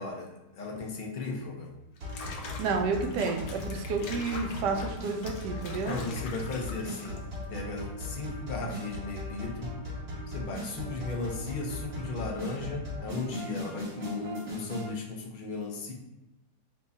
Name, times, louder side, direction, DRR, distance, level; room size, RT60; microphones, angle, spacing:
voice 1, 0.0-1.7 5.9-9.7 10.3-15.9, left 3 dB, 60° left, 0 dB, 0.5 m, -36 dB
Water / Bathtub (filling or washing), 2.0-7.5, left 4 dB, 80° left, 1.3 m, -44 dB
sound 1, 2.0-14.9, left 1 dB, 65° right, 2.1 m, -38 dB
voice 2, 2.6-6.0, right 4 dB, 85° right, 3 dB, 1.2 m, -30 dB
4.5 x 2.3 x 3.9 m, 1.0 s
omnidirectional pair, 1.8 m